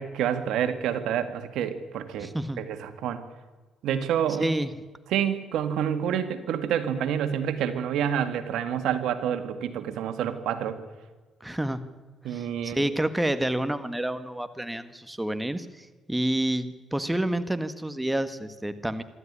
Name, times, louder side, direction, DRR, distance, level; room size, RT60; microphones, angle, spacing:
voice 1, 0.0-2.3 2.6-3.2 3.8-4.5 5.1-10.8 12.2-12.8, right 9 dB, 85° right, 9 dB, 2.0 m, -28 dB
voice 2, 2.2-2.6 4.4-4.7 11.4-11.8 12.2-19.0, right 1 dB, 5° right, 11 dB, 1.5 m, -29 dB
25.5 x 13.0 x 9.9 m, 1.3 s
cardioid pair, 90°, 0 cm